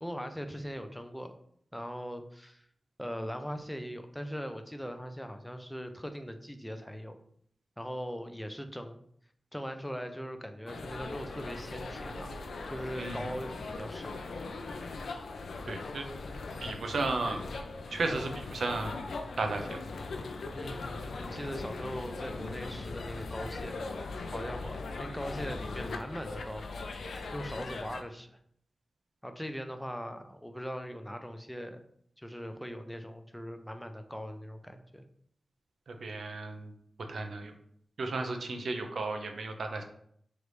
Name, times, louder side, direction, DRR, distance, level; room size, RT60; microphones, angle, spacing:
voice 1, 0.0-1.3 1.7-2.7 3.0-7.2 7.8-9.0 9.5-12.4 12.7-14.1 20.5-26.7 27.3-28.4 29.2-31.8 32.2-35.0, equal, 5° left, 7 dB, 0.4 m, -40 dB
sound 1, 10.7-28.0, left 3 dB, 90° left, 0.4 m, -40 dB
voice 2, 15.7-16.0 16.6-17.4 17.9-19.1 19.4-19.8 35.9-36.7 37.1-37.5 38.0-39.8, right 3 dB, 80° right, 5 dB, 0.6 m, -34 dB
3.9 x 3.3 x 3.2 m, 0.67 s
wide cardioid pair, 105°, 0 cm